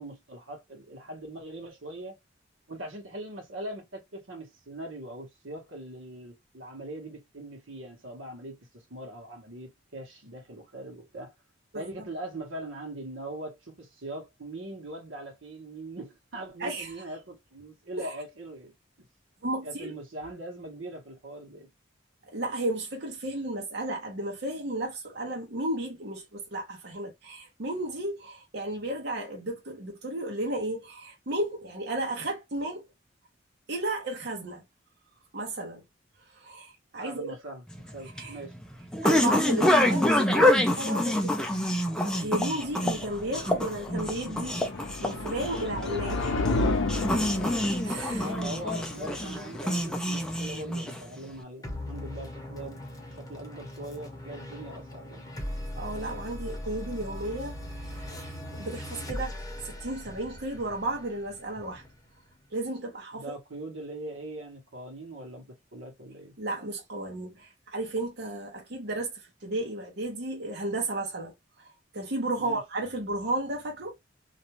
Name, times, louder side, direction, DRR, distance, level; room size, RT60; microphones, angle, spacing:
voice 1, 0.0-2.2 2.7-11.3 11.7-18.7 19.6-21.7 37.0-38.5 48.2-55.2 63.1-66.4 72.3-72.6, right 1 dB, 90° right, 1.0 m, -41 dB
voice 2, 11.7-12.1 16.6-16.9 18.0-18.2 19.4-19.9 22.3-32.8 33.7-34.6 35.3-35.8 36.3-37.4 38.2-38.4 39.0-41.8 42.0-46.7 47.8-48.3 55.8-61.8 62.5-63.2 66.4-74.0, right 1 dB, 60° right, 0.9 m, -34 dB
sound 1, 37.7-51.3, left 1 dB, 5° left, 0.4 m, -27 dB
sound 2, 42.1-51.0, left 2 dB, 75° left, 0.5 m, -33 dB
sound 3, 51.6-62.4, left 1 dB, 20° left, 0.8 m, -40 dB
2.5 x 2.2 x 2.9 m
head